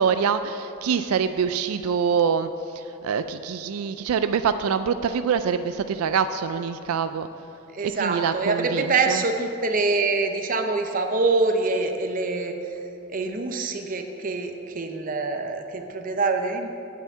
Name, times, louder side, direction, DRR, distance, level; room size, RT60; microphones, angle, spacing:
voice 1, 0.0-7.3 7.8-9.2, right 6 dB, 85° right, 10 dB, 0.3 m, -25 dB
voice 2, 7.7-12.6 13.1-16.8, right 3 dB, 40° right, 5 dB, 0.7 m, -25 dB
8.3 x 5.7 x 7.2 m, 2.7 s
head